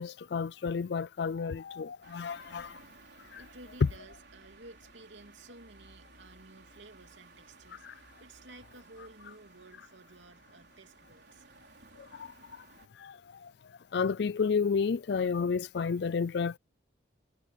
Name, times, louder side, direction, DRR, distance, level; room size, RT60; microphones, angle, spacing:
voice 1, 0.0-2.8 3.3-3.4 3.8-3.9 7.8-7.9 12.0-12.6 13.0-13.5 13.9-16.6, left 5 dB, 60° left, 0.4 m, -31 dB
sound 1, 2.0-12.9, right 3 dB, 60° right, 4.7 m, -57 dB
voice 2, 3.4-11.4, right 2 dB, 75° right, 2.7 m, -54 dB
head